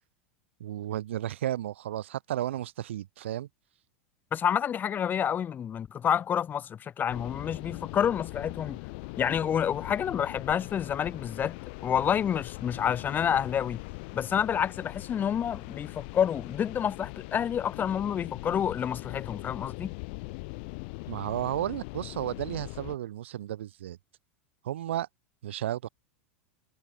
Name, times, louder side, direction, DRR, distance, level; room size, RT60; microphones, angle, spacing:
voice 1, 0.6-3.5 21.1-24.0 24.6-25.1 25.4-25.9, right 12 dB, 70° right, 1.4 m, -33 dB
voice 2, 4.3-8.8 9.2-11.6 11.8-13.8 14.1-19.9, left 8 dB, 30° left, 0.9 m, -28 dB
sound 1, 7.1-23.0, left 29 dB, 55° left, 0.9 m, -41 dB
figure-of-eight pair, 85°, 7 cm